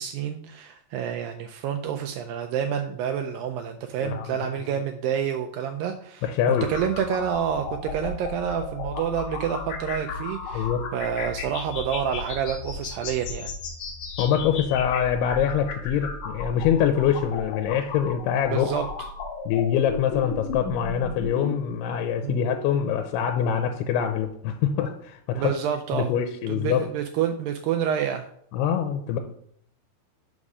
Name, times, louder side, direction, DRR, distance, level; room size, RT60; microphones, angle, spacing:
voice 1, 0.0-13.5 18.5-18.9 22.2-22.4 25.3-26.1 26.5-28.3, right 8 dB, 85° right, 4 dB, 2.0 m, -28 dB
voice 2, 6.2-6.7 10.5-10.8 14.2-18.8 19.5-25.5 25.9-26.9 28.5-29.2, left 9 dB, 85° left, 5 dB, 2.6 m, -24 dB
sound 1, 6.5-21.5, left 4 dB, 70° left, 2.0 m, -35 dB
6.1 x 5.4 x 4.9 m, 0.66 s
omnidirectional pair, 4.6 m